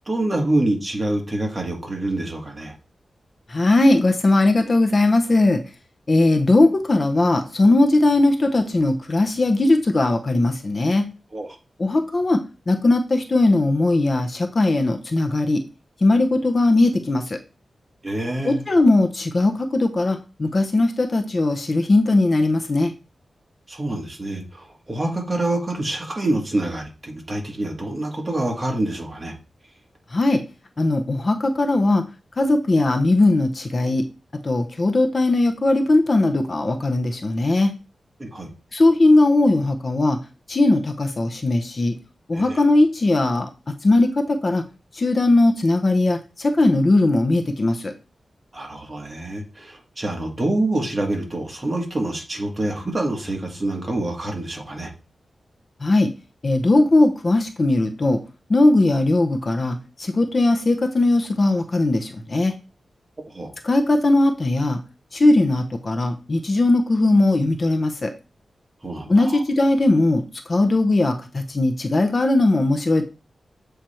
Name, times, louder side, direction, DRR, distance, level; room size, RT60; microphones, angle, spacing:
voice 1, 0.1-2.7 11.3-11.5 18.0-18.6 23.7-29.3 38.2-38.5 42.3-42.6 48.5-54.9 63.3-63.5 68.8-69.4, right 1 dB, 25° right, 1 dB, 1.8 m, -26 dB
voice 2, 3.5-5.6 6.1-11.0 11.8-12.4 12.7-15.6 16.0-17.4 18.4-22.9 30.1-30.4 30.8-32.0 32.4-34.0 34.4-37.7 38.7-40.2 40.5-41.9 42.3-44.6 44.9-47.9 55.8-56.1 56.4-58.2 58.5-62.5 63.6-64.8 65.1-68.1 69.1-73.0, left 2 dB, 40° left, 5 dB, 0.7 m, -19 dB
7.5 x 3.3 x 4.4 m, 0.31 s
wide cardioid pair, 125°, 0 cm